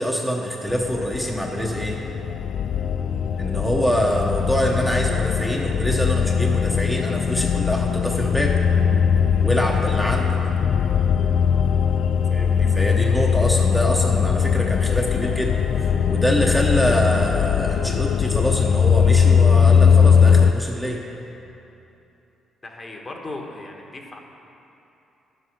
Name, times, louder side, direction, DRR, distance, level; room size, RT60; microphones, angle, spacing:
voice 1, 0.0-2.0 3.4-8.6 9.4-10.4 12.3-21.0, equal, ahead, -2 dB, 1.0 m, -25 dB
sound 1, 0.7-20.5, left 7 dB, 65° left, 0.3 m, -20 dB
voice 2, 22.6-24.2, left 2 dB, 30° left, 1 dB, 1.4 m, -36 dB
11.0 x 8.1 x 5.7 m, 2.9 s
cardioid pair, 90°, 0 cm